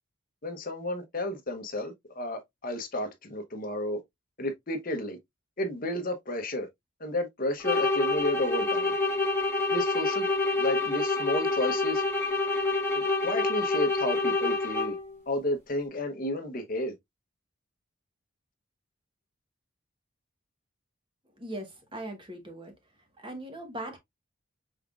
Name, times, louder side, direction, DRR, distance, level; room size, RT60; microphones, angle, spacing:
voice 1, 0.4-4.0 4.4-5.2 5.6-6.7 7.0-8.9 9.7-10.3 10.6-12.0 12.9-15.0 15.3-16.9, left 1 dB, 40° left, 0.9 m, -32 dB
sound 1, 7.6-15.1, left 3 dB, 10° left, 1.6 m, -27 dB
voice 2, 21.4-22.7 23.2-24.0, right 1 dB, 25° right, 1.1 m, -39 dB
5.6 x 3.5 x 2.4 m
head